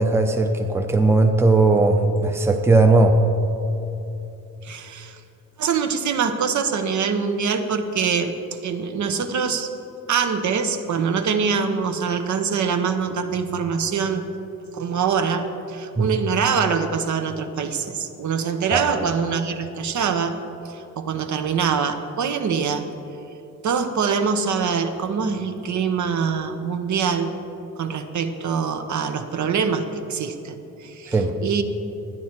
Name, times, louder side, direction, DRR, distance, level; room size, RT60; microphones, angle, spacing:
voice 1, 0.0-3.2 16.0-16.1 18.7-18.8 31.1-31.4, right 3 dB, 10° right, 5 dB, 0.6 m, -17 dB
voice 2, 4.6-5.2 5.6-8.3 8.6-9.7 10.1-14.3 14.7-20.4 20.6-22.9 23.6-27.3 27.8-31.6, right 6 dB, 60° right, 7 dB, 0.8 m, -24 dB
11.0 x 9.6 x 4.4 m, 2.8 s
cardioid pair, 120°, 33 cm